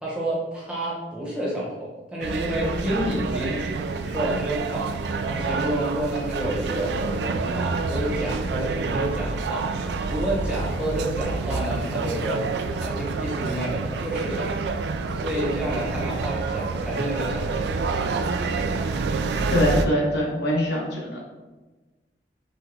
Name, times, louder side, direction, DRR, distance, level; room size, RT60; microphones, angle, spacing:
voice 1, 0.0-3.7 4.0-4.9 5.2-9.7 10.1-12.4 12.8-14.6 15.1-17.5, right 1 dB, 5° right, -7 dB, 0.9 m, -29 dB
sound 1, 2.2-19.9, right 4 dB, 70° right, 0.3 m, -28 dB
voice 2, 19.5-21.2, equal, 70° left, -4 dB, 1.2 m, -23 dB
5.8 x 2.2 x 3.3 m, 1.2 s
head